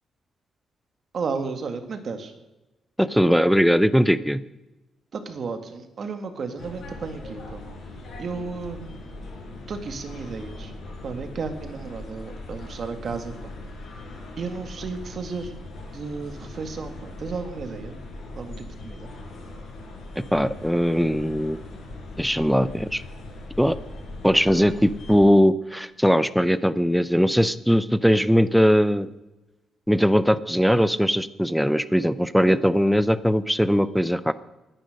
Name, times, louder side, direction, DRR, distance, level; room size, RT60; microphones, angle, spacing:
voice 1, 1.1-2.3 5.1-7.6 8.2-9.2 9.7-10.7 11.0-13.5 14.4-15.5 15.9-18.0 18.4-19.1 32.5-32.6, right 4 dB, 40° right, 7 dB, 1.9 m, -33 dB
voice 2, 3.0-4.4 20.2-21.6 22.2-23.0 23.6-23.8 24.2-29.1 29.9-34.3, equal, ahead, 14 dB, 0.6 m, -20 dB
sound 1, 6.6-25.3, left 2 dB, 55° left, 5.0 m, -40 dB
20.5 x 10.5 x 6.6 m, 1.0 s
cardioid pair, 165°, 0 cm